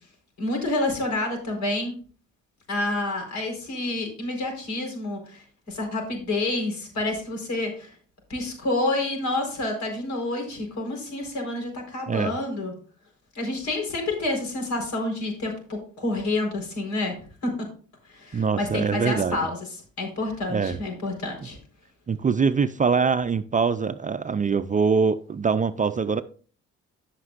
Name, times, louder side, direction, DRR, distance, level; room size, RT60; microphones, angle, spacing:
voice 1, 0.4-1.9 2.7-7.9 8.3-12.7 13.3-17.1 17.4-17.5 18.1-19.6 20.0-21.6, left 2 dB, 65° left, 4.4 m, -28 dB
voice 2, 18.3-19.4 20.5-20.8 22.1-26.2, right 5 dB, 25° right, 0.4 m, -23 dB
15.0 x 6.0 x 2.5 m
cardioid pair, 90°, 30 cm